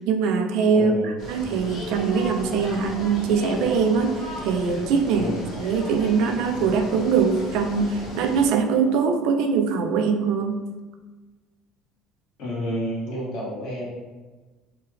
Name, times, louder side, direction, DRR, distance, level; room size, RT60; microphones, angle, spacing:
voice 1, 0.1-0.9 1.3-5.3 5.6-10.6, right 5 dB, 70° right, 5 dB, 0.3 m, -22 dB
voice 2, 0.7-1.1 5.1-5.4 12.4-13.9, equal, 65° left, -5 dB, 1.4 m, -29 dB
sound 1, 1.2-8.5, equal, 50° left, 1.1 m, -35 dB
3.3 x 2.2 x 3.1 m, 1.3 s
cardioid pair, 125°, 0 cm